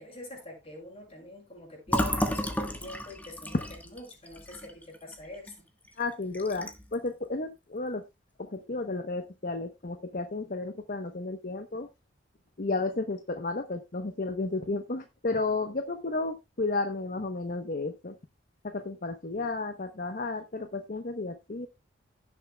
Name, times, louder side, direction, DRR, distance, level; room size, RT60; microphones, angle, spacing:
voice 1, 0.0-5.6 19.4-19.5, left 1 dB, 30° left, 6.2 m, -45 dB
Fill (with liquid), 1.9-5.5 5.9-6.0 6.3-6.9, equal, 10° left, 1.3 m, -32 dB
voice 2, 6.0-8.0 8.4-11.9 12.6-18.1 18.6-21.7, left 3 dB, 50° left, 1.0 m, -32 dB
16.5 x 7.4 x 2.3 m
head